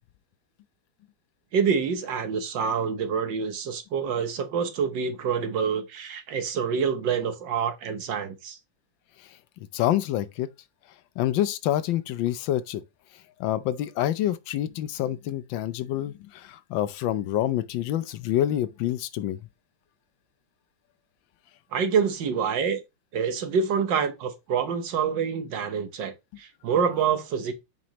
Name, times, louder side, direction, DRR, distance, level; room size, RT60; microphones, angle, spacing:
voice 1, 1.5-8.6 21.7-22.8 23.1-27.5, right 6 dB, 70° right, 1.7 m, -27 dB
voice 2, 9.7-10.5 11.2-12.8 13.4-19.4, left 12 dB, 80° left, 1.3 m, -27 dB
7.5 x 5.3 x 2.9 m
omnidirectional pair, 2.1 m